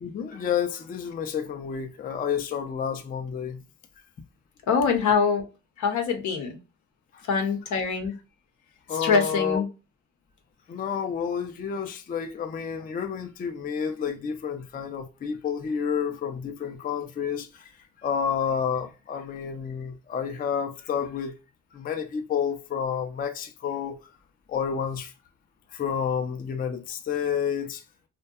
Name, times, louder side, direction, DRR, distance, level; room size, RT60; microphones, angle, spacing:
voice 1, 0.0-3.6 7.1-7.2 8.9-9.6 10.7-17.7 18.0-21.3 21.7-24.0 24.5-25.1 25.7-27.8, left 7 dB, 30° left, 0.4 m, -30 dB
voice 2, 4.7-5.4 5.8-6.6 7.3-8.1 9.0-9.6, left 5 dB, 80° left, 0.8 m, -24 dB
2.7 x 2.1 x 2.2 m
cardioid pair, 90°, 30 cm